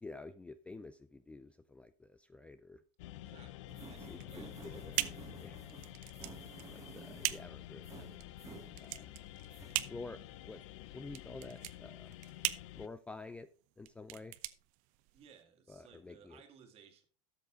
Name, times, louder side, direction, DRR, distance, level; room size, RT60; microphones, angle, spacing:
voice 1, 0.0-2.8 4.1-5.0 5.4-5.6 6.7-8.2 8.7-9.1 9.9-10.6 10.9-12.2 12.7-13.5 13.8-14.4 15.7-16.4, left 3 dB, 10° left, 0.3 m, -49 dB
sound 1, 3.0-12.9, left 15 dB, 85° left, 0.6 m, -50 dB
voice 2, 3.2-5.4 15.1-17.1, right 8 dB, 40° right, 2.0 m, -60 dB
sound 2, 3.7-9.2 9.5-9.8, right 5 dB, 20° right, 1.5 m, -54 dB
sound 3, 4.1-15.4, right 18 dB, 60° right, 0.7 m, -41 dB
13.0 x 7.1 x 3.8 m
supercardioid pair, 145°, 15 cm